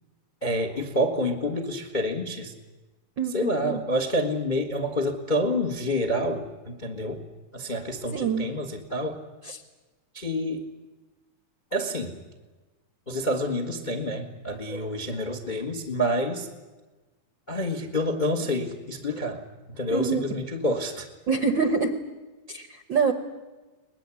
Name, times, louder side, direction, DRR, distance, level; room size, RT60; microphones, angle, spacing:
voice 1, 0.4-2.5 3.3-7.2 7.5-9.2 10.1-10.7 11.7-12.2 13.1-16.5 17.5-19.4 19.7-21.1, equal, 45° left, 6 dB, 0.5 m, -28 dB
voice 2, 3.2-3.8 8.1-8.4 9.5-9.6 19.9-20.2 21.3-22.0 22.5-23.1, right 5 dB, 60° right, 7 dB, 1.2 m, -25 dB
22.5 x 20.5 x 9.7 m, 1.2 s
omnidirectional pair, 3.8 m